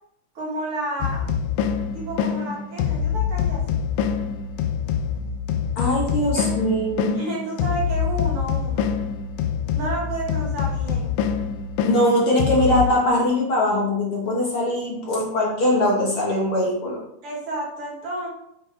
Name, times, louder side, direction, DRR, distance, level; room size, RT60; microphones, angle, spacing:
voice 1, 0.4-1.3 1.9-3.8 6.3-6.5 7.1-8.9 9.7-11.2 17.2-18.3, right 2 dB, 50° right, -3 dB, 2.2 m, -31 dB
sound 1, 1.0-12.9, left 7 dB, 85° left, 1.4 m, -25 dB
voice 2, 5.8-7.2 11.8-17.0, left 1 dB, 55° left, -2 dB, 1.9 m, -21 dB
8.9 x 6.1 x 3.4 m, 0.79 s
omnidirectional pair, 3.4 m